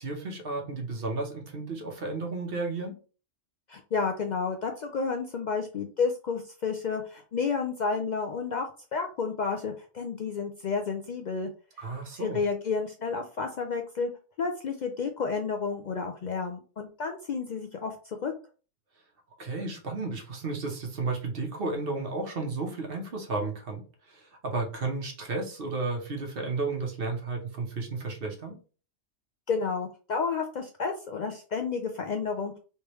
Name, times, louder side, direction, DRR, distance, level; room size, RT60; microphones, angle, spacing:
voice 1, 0.0-3.0 11.8-12.4 19.4-28.6, right 3 dB, 50° right, 2 dB, 1.0 m, -33 dB
voice 2, 3.7-8.7 8.9-11.5 12.2-14.1 14.4-18.3 29.5-32.6, left 5 dB, 75° left, 4 dB, 0.4 m, -31 dB
3.3 x 3.2 x 3.0 m, 0.37 s
omnidirectional pair, 1.3 m